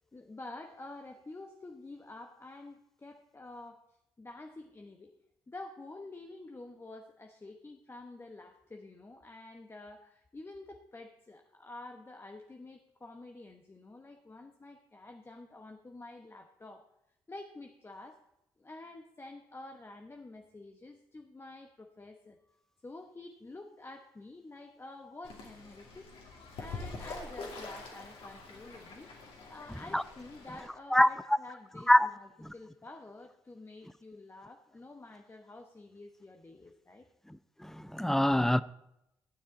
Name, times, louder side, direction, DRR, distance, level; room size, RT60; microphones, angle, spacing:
voice 1, 0.0-5.1 5.5-16.9 17.3-18.2 18.6-26.1 26.6-29.1 29.5-37.1, left 2 dB, 25° left, 1.1 m, -49 dB
Fowl / Bird, 25.2-30.7, left 3 dB, 60° left, 2.5 m, -45 dB
voice 2, 30.9-31.4 31.9-32.1 32.4-32.5 37.3-38.6, left 1 dB, 5° left, 0.5 m, -25 dB
15.0 x 9.7 x 4.1 m
figure-of-eight pair, 45°, 11 cm